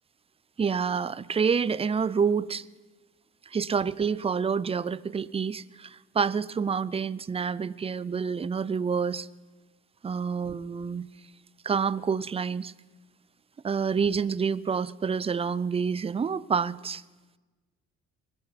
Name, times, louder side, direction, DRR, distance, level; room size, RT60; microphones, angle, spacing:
voice 1, 0.6-2.6 3.5-9.3 10.0-11.1 11.6-12.7 13.6-17.0, right 6 dB, 20° right, 0.4 m, -28 dB
23.0 x 10.0 x 5.9 m
cardioid pair, 90°, 30 cm